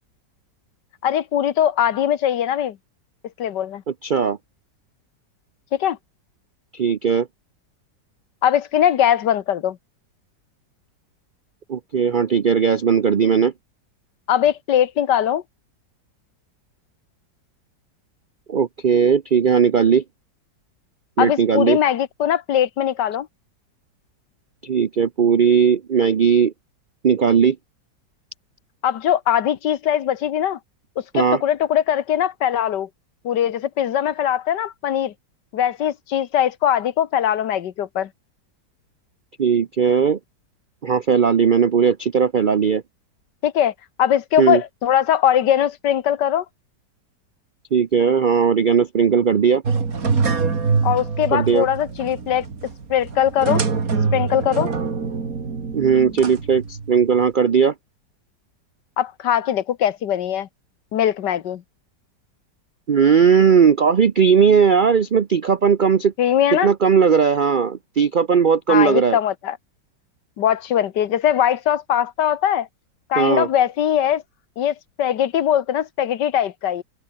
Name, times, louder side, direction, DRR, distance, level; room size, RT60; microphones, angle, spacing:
voice 1, 1.0-2.8 3.4-3.8 5.7-6.0 8.4-9.8 14.3-15.4 21.2-23.3 28.8-30.6 31.0-32.9 33.2-35.1 35.5-38.1 43.4-43.7 44.0-46.4 50.8-52.4 52.9-53.6 54.1-54.7 59.0-60.5 60.9-61.6 66.2-66.7 68.7-69.6 70.4-72.7 73.1-74.2 74.6-76.8, left 10 dB, 75° left, 1.7 m, -20 dB
voice 2, 3.9-4.4 6.7-7.3 11.7-13.5 18.5-20.0 21.2-21.8 24.6-26.5 27.0-27.6 31.1-31.4 39.4-40.2 40.8-42.8 44.4-44.6 47.7-49.6 51.3-51.7 55.7-57.7 62.9-66.1 66.5-69.2 73.2-73.5, right 6 dB, 90° right, 0.4 m, -17 dB
sound 1, 49.7-57.2, right 5 dB, 50° right, 2.8 m, -24 dB
omnidirectional pair, 1.9 m